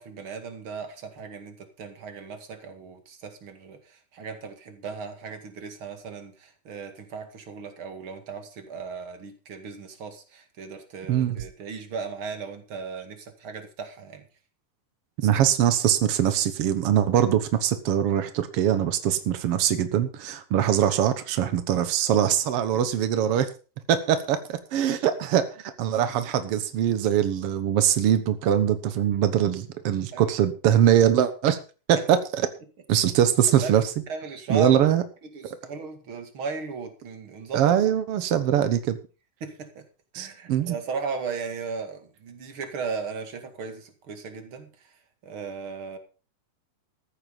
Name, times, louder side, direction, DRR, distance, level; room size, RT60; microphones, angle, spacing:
voice 1, 0.0-14.2 30.1-30.2 33.6-33.8 34.1-35.0 35.3-37.7 39.4-39.8 40.1-44.7 45.2-46.0, right 5 dB, 40° right, 2.5 m, -36 dB
voice 2, 15.2-23.5 23.9-31.6 31.9-32.4 32.9-33.9 34.5-35.0 37.5-39.0 40.1-40.8, right 10 dB, 85° right, 1.3 m, -22 dB
14.0 x 9.6 x 5.3 m
omnidirectional pair, 4.2 m